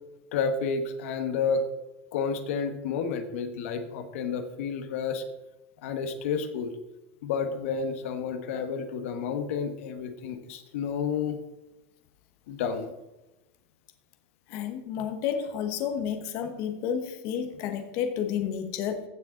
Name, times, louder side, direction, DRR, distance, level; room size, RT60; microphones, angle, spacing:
voice 1, 0.3-1.7 2.1-5.2 5.8-6.7 7.2-11.4 12.5-12.9, left 5 dB, 75° left, 8 dB, 1.2 m, -30 dB
voice 2, 14.5-19.0, left 8 dB, 45° left, 7 dB, 1.2 m, -31 dB
16.0 x 6.4 x 3.8 m, 1.0 s
supercardioid pair, 165°, 7 cm